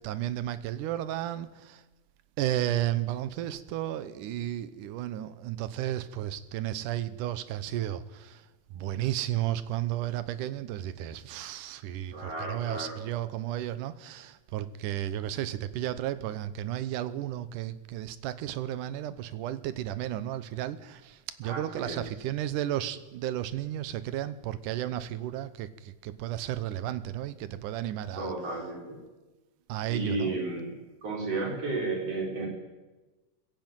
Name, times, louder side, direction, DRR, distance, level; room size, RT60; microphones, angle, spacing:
voice 1, 0.0-1.8 2.4-8.4 8.7-28.3 29.7-30.4, right 12 dB, 85° right, 2.5 m, -33 dB
voice 2, 12.1-13.0 21.4-22.0 28.2-29.0 29.9-30.7 31.0-32.5, right 3 dB, 50° right, 5.3 m, -33 dB
21.0 x 16.0 x 9.0 m
omnidirectional pair, 3.6 m